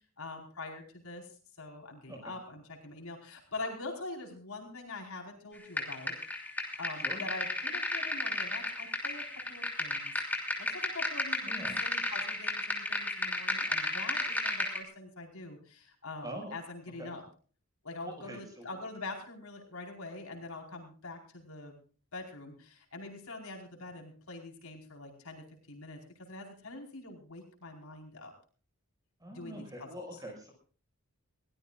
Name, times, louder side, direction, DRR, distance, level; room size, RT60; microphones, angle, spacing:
voice 1, 0.2-1.3 1.6-6.1 6.8-17.2 17.8-21.8 22.1-28.3 29.3-30.0, left 2 dB, 80° left, 1 dB, 4.7 m, -44 dB
sound 1, 5.8-14.8, left 2 dB, 10° left, 3.0 m, -34 dB
voice 2, 11.4-11.8 16.2-16.5 17.0-17.1 18.0-18.8 29.2-30.5, right 1 dB, 15° right, 2 dB, 6.2 m, -44 dB
22.5 x 18.0 x 2.5 m, 0.41 s
head